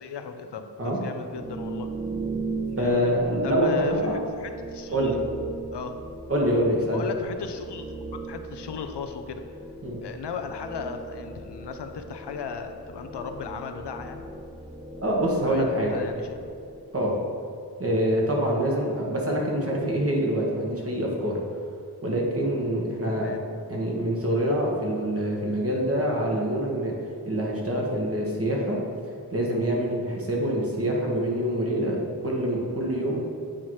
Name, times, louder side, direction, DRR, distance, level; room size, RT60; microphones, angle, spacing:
voice 1, 0.0-1.9 2.7-3.1 3.4-5.2 5.7-6.0 6.9-8.0 8.3-9.4 10.0-14.2 15.4-16.5 23.1-23.4 30.4-30.5, left 5 dB, 85° left, 7 dB, 0.5 m, -36 dB
sound 1, 1.3-17.1, right 3 dB, 10° right, 0.4 m, -38 dB
voice 2, 2.8-4.2 4.9-5.1 6.3-7.0 9.8-10.0 15.0-15.9 16.9-17.2 17.8-21.4 22.0-23.4 23.7-26.9 27.3-28.8 29.3-32.0 32.2-33.2, right 1 dB, 35° right, -3 dB, 1.4 m, -25 dB
8.7 x 2.9 x 4.7 m, 2.5 s
wide cardioid pair, 65°, 40 cm